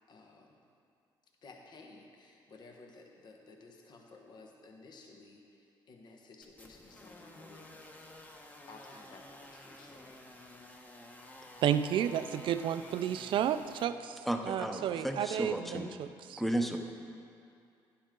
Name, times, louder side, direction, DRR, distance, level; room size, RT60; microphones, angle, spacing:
voice 1, 0.1-0.6 1.4-7.8 8.7-10.2, left 3 dB, 55° left, 1 dB, 1.3 m, -55 dB
sound 1, 6.4-13.9, left 1 dB, 15° left, 1.2 m, -52 dB
voice 2, 11.6-16.4, right 9 dB, 65° right, 11 dB, 0.5 m, -32 dB
voice 3, 14.3-16.8, right 1 dB, ahead, 4 dB, 0.9 m, -34 dB
11.5 x 10.5 x 3.8 m, 2.4 s
cardioid pair, 105°, 9 cm